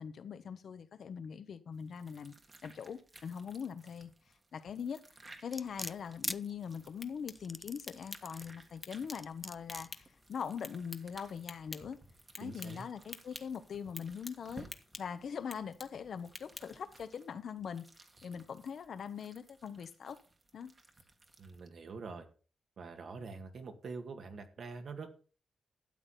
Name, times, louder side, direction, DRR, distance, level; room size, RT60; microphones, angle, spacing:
voice 1, 0.0-2.3 2.6-4.1 4.5-5.0 5.4-12.0 12.4-14.7 15.0-17.8 18.2-20.2 20.5-20.7, left 7 dB, 65° left, 1.1 m, -42 dB
sound 1, 1.7-21.7, right 2 dB, 30° right, 1.7 m, -59 dB
sound 2, 5.5-6.4 7.3-8.5 9.1-9.9 10.5-10.6, left 1 dB, 10° left, 0.4 m, -41 dB
sound 3, 6.8-16.9, left 3 dB, 30° left, 1.2 m, -52 dB
voice 2, 12.4-12.9 21.4-22.3 22.8-25.1, right 4 dB, 60° right, 2.0 m, -45 dB
12.5 x 8.6 x 4.3 m
wide cardioid pair, 120°, 0 cm